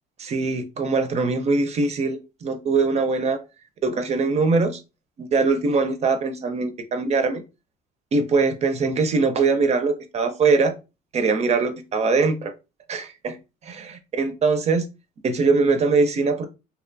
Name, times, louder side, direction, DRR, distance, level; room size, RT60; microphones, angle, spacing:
voice 1, 0.2-3.4 3.8-4.8 5.2-7.4 8.1-10.7 11.1-12.5 12.9-13.4 13.6-14.9 15.2-16.5, right 4 dB, 40° right, 0.4 m, -22 dB
2.7 x 2.1 x 2.5 m
cardioid pair, 110°, 17 cm